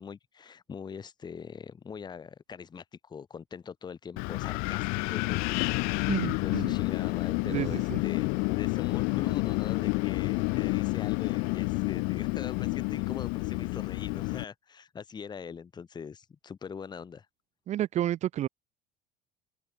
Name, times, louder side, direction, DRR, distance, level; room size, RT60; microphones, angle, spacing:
voice 1, 0.0-17.3, left 6 dB, 30° left, 1.5 m, -43 dB
Wind, 4.2-14.4, left 33 dB, 75° left, 0.4 m, -29 dB
voice 2, 6.1-6.8 7.4-8.0 17.7-18.5, right 12 dB, 50° right, 1.1 m, -31 dB
supercardioid pair, 100°, 15 cm